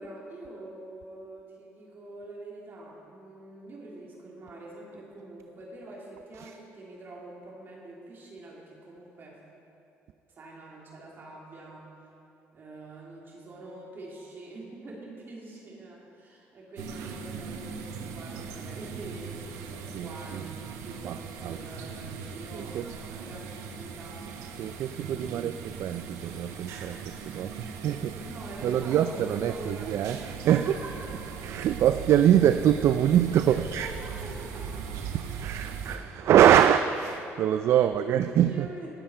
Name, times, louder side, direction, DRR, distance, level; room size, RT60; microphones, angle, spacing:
voice 1, 0.0-9.4 10.4-11.9 12.5-24.7 25.0-25.5 28.1-29.9 30.2-31.1 33.5-34.8 37.7-38.9, right 2 dB, 45° right, -3 dB, 2.9 m, -45 dB
sound 1, 16.8-36.0, right 6 dB, 90° right, 0.9 m, -39 dB
voice 2, 19.9-20.5 21.0-21.6 22.5-22.9 24.6-28.3 28.6-30.8 31.4-33.9 35.1-38.7, right 10 dB, 65° right, 10 dB, 0.4 m, -24 dB
18.5 x 7.7 x 4.5 m, 2.9 s
cardioid pair, 100°, 5 cm